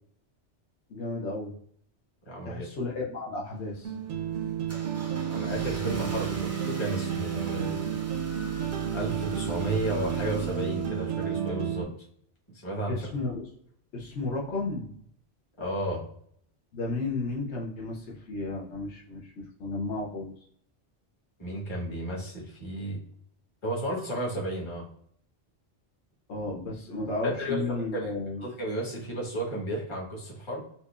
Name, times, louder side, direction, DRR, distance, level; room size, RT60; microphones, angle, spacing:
voice 1, 0.9-1.6 2.4-4.5 12.9-13.4 13.9-14.9 16.7-20.3 26.3-28.4, left 2 dB, 75° left, -3 dB, 1.1 m, -33 dB
voice 2, 2.3-2.6 5.3-7.8 8.9-11.9 12.6-12.9 15.6-16.0 21.4-23.0 23.6-24.9 27.2-28.1 28.4-30.6, right 1 dB, 25° left, -4 dB, 1.1 m, -33 dB
Car / Engine starting, 3.4-11.6, right 2 dB, 25° right, 0.4 m, -42 dB
sound 1, 3.8-11.8, right 9 dB, 80° right, 0.9 m, -31 dB
4.3 x 2.6 x 2.3 m, 0.66 s
omnidirectional pair, 1.2 m